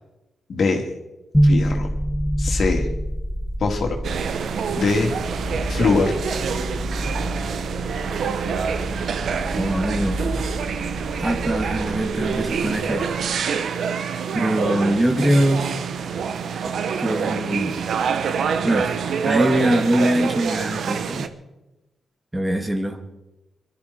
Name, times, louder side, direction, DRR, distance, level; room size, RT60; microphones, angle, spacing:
voice 1, 0.5-0.9 1.4-1.9 2.4-2.9 3.6-4.0 4.8-5.1 5.7-6.2, left 4 dB, 65° left, 2 dB, 2.8 m, -22 dB
sound 1, 1.3-13.4, equal, 5° left, 0.7 m, -27 dB
sound 2, 4.0-21.3, right 6 dB, 75° right, 1.0 m, -26 dB
voice 2, 9.5-10.3 11.2-13.1 14.3-15.7 17.0-17.8 18.6-18.9 19.2-21.3 22.3-23.0, right 1 dB, 15° right, 5 dB, 2.2 m, -22 dB
22.5 x 13.0 x 4.4 m, 0.98 s
cardioid pair, 60°, 0 cm